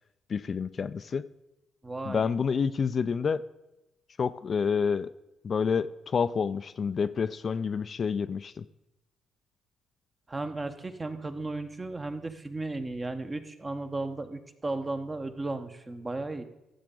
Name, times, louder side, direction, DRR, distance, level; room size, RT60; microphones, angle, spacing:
voice 1, 0.3-1.2 2.1-3.4 4.2-5.1 5.4-8.7, left 6 dB, 50° left, 13 dB, 0.3 m, -28 dB
voice 2, 1.8-2.3 10.3-16.4, right 2 dB, 25° right, 8 dB, 1.0 m, -35 dB
14.0 x 6.9 x 3.8 m, 0.94 s
hypercardioid pair, 55°, 0 cm